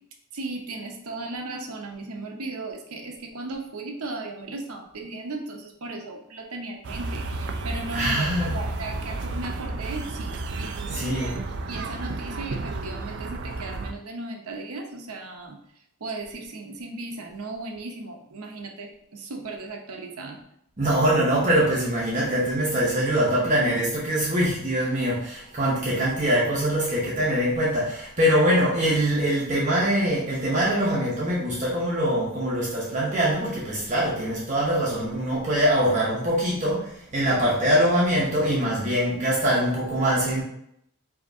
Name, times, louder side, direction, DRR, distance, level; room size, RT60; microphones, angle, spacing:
voice 1, 0.3-11.4 11.7-15.6 16.0-20.4, right 2 dB, 80° right, 2 dB, 0.7 m, -36 dB
sound 1, 6.8-13.9, right 2 dB, 50° right, 0.4 m, -32 dB
voice 2, 7.9-8.5 10.9-11.3 20.8-40.4, equal, 30° right, -5 dB, 0.8 m, -23 dB
5.0 x 2.8 x 2.7 m, 0.73 s
head